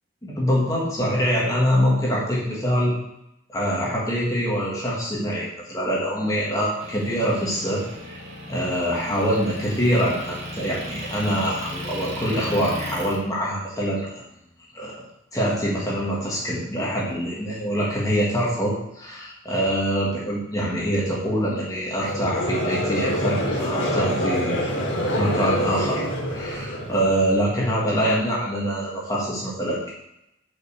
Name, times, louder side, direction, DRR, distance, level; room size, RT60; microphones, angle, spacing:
voice 1, 0.2-2.9 3.5-7.8 8.1-8.2 8.5-14.2 14.7-15.0 15.3-24.6 25.1-26.0 26.3-29.9, equal, 15° left, -5 dB, 1.6 m, -24 dB
Motor vehicle (road) / Engine, 6.8-13.2, equal, 70° right, 1.9 m, -35 dB
Conversation / Crowd, 22.0-27.3, equal, 75° left, 2.0 m, -26 dB
6.2 x 5.2 x 6.5 m, 0.84 s
head